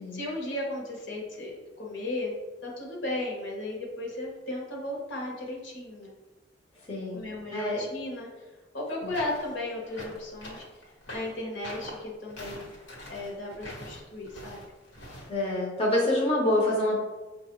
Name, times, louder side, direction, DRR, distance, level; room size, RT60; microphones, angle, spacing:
voice 1, 0.0-2.3 2.6-6.1 7.1-8.3 8.7-10.6 11.1-12.7 13.1-14.6, left 2 dB, 65° left, -1 dB, 1.0 m, -35 dB
voice 2, 6.9-7.2 7.5-7.8 9.0-9.2 15.3-17.0, left 1 dB, 30° left, -4 dB, 0.7 m, -26 dB
sound 1, 9.1-15.3, left 1 dB, 90° left, 1.3 m, -43 dB
5.6 x 2.3 x 3.0 m, 1.2 s
head